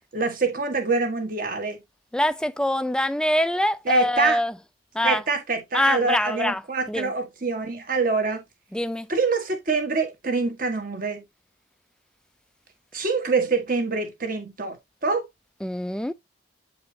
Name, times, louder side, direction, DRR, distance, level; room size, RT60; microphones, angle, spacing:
voice 1, 0.1-1.8 3.9-4.4 5.0-8.4 9.1-11.2 12.9-14.8 15.0-15.2, right 3 dB, 45° right, 1.4 m, -25 dB
voice 2, 2.1-4.5 4.9-5.2 5.7-6.6 6.9-7.1 8.7-9.1 15.6-16.1, left 1 dB, 5° left, 0.3 m, -24 dB
8.4 x 5.0 x 2.7 m
head